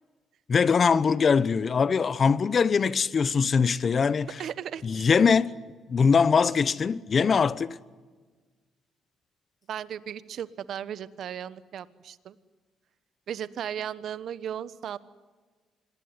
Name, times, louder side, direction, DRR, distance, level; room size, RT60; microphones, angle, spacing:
voice 1, 0.5-4.4 4.8-5.5 5.9-7.8, left 5 dB, 45° left, 1.0 m, -22 dB
voice 2, 4.2-4.9 9.7-12.4 13.3-15.0, right 9 dB, 70° right, 1.2 m, -36 dB
26.5 x 20.0 x 9.7 m
cardioid pair, 90°, 0 cm